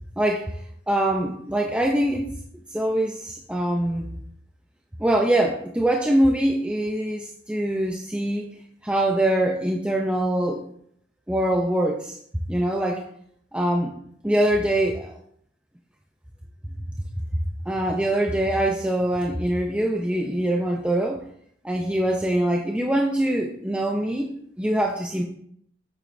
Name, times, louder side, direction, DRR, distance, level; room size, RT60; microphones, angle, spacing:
voice 1, 0.2-0.6 0.9-2.3 2.7-4.1 5.0-8.5 8.8-10.6 11.3-12.2 12.5-13.1 13.5-13.9 14.2-15.2 17.7-21.2 21.6-24.3 24.6-25.2, right 1 dB, 5° right, 0 dB, 0.5 m, -23 dB
8.1 x 7.4 x 2.6 m, 0.65 s
head